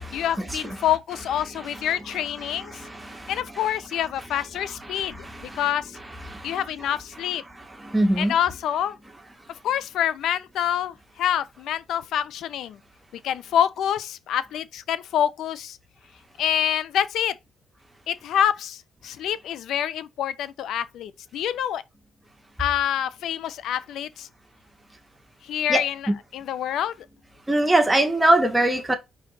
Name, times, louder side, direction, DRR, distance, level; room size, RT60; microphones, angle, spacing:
voice 1, 0.1-2.8 3.3-6.0 6.4-7.4 8.2-9.0 9.6-12.8 13.2-15.8 16.4-17.4 18.1-21.8 22.6-24.3 25.4-27.1, left 10 dB, 80° left, 0.8 m, -26 dB
voice 2, 2.5-3.4 4.9-5.6 6.3-6.6 7.8-8.4 25.7-26.2 27.5-28.9, right 1 dB, 10° right, 2.0 m, -23 dB
5.7 x 5.2 x 4.2 m
cardioid pair, 90°, 0 cm